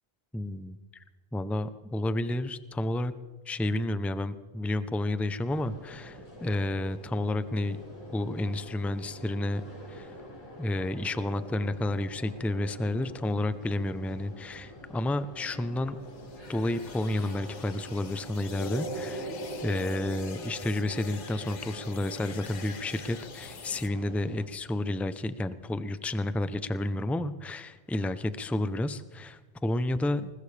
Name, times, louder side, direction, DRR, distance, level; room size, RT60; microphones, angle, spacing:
voice 1, 0.3-1.0 1.3-3.1 3.5-7.8 8.1-9.6 9.9-10.1 10.6-16.0 16.5-19.3 19.6-30.3, left 1 dB, ahead, 12 dB, 0.3 m, -31 dB
sound 1, 5.5-24.5, equal, 25° left, 5.9 m, -43 dB
sound 2, 16.0-23.9, left 7 dB, 45° left, 0.7 m, -48 dB
20.5 x 20.0 x 3.3 m, 1.3 s
omnidirectional pair, 1.2 m